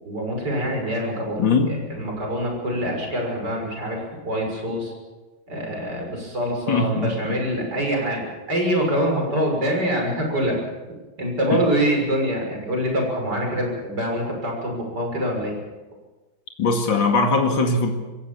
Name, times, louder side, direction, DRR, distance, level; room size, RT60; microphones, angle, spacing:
voice 1, 0.0-1.4 1.9-4.9 5.5-10.6 11.2-15.6, equal, 55° right, 0 dB, 7.1 m, -25 dB
voice 2, 1.4-1.7 6.7-7.4 11.5-11.7 16.6-17.9, left 3 dB, 70° left, 3 dB, 2.9 m, -21 dB
26.0 x 16.0 x 7.3 m, 1.2 s
omnidirectional pair, 2.2 m